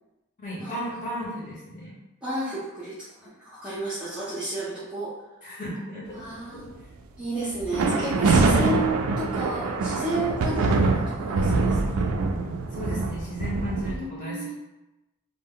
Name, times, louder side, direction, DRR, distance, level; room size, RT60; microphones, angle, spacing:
voice 1, 0.4-1.9 5.4-6.2 6.6-6.7 12.3-14.5, equal, 35° left, -6 dB, 0.8 m, -35 dB
voice 2, 2.2-5.1 6.1-6.7 7.2-8.9 9.2-12.0 13.9-14.5, right 1 dB, 5° right, -10 dB, 0.5 m, -32 dB
sound 1, 7.6-14.0, right 3 dB, 85° right, 0.3 m, -24 dB
2.1 x 2.0 x 3.6 m, 0.98 s
head